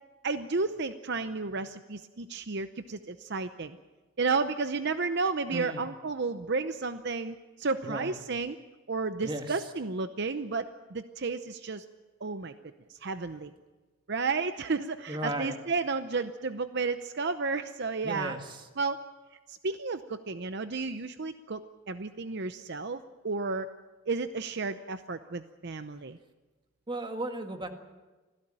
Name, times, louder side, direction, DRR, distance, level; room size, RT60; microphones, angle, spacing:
voice 1, 0.2-3.8 4.2-8.6 8.9-11.9 12.2-12.5 12.9-13.5 14.1-18.4 18.8-19.0 19.5-23.7 24.1-26.2, right 4 dB, 55° right, 10 dB, 0.7 m, -32 dB
voice 2, 5.5-5.9 7.8-8.2 9.2-9.7 15.1-15.6 18.0-18.7 26.9-27.7, right 1 dB, 25° right, 5 dB, 1.9 m, -35 dB
26.0 x 16.0 x 8.8 m, 1.2 s
head